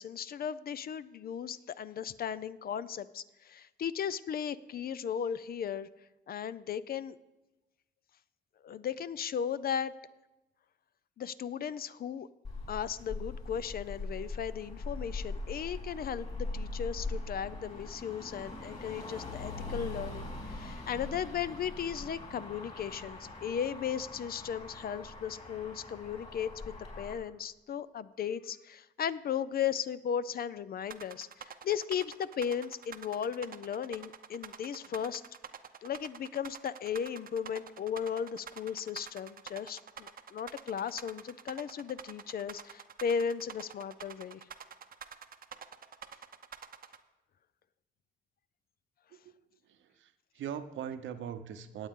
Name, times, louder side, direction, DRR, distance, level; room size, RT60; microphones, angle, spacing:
voice 1, 0.0-5.9 6.3-7.2 8.6-9.9 11.2-12.3 12.7-35.2 35.8-44.4, left 8 dB, 50° left, 16 dB, 0.5 m, -36 dB
Motor vehicle (road), 12.4-27.1, left 2 dB, 35° left, 4.1 m, -41 dB
sound 1, 30.9-47.0, right 8 dB, 45° right, 0.7 m, -47 dB
voice 2, 49.1-51.9, right 9 dB, 75° right, 9 dB, 0.9 m, -42 dB
18.0 x 7.9 x 3.7 m, 1.0 s
cardioid pair, 90°, 20 cm